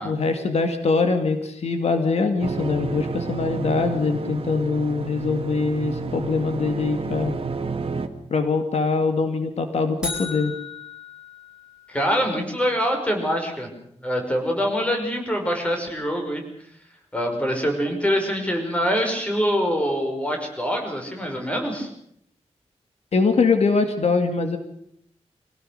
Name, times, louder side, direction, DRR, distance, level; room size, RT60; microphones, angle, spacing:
voice 1, 0.0-7.4 8.3-10.5 23.1-24.6, left 4 dB, 70° left, 7 dB, 2.2 m, -23 dB
sound 1, 2.4-8.1, right 4 dB, 55° right, 1.9 m, -31 dB
sound 2, 10.0-12.1, left 4 dB, 5° right, 7.4 m, -35 dB
voice 2, 11.9-13.7 14.0-16.4 17.1-21.9, equal, 10° left, 2 dB, 5.5 m, -24 dB
25.0 x 17.5 x 6.6 m, 0.69 s
wide cardioid pair, 150°, 11 cm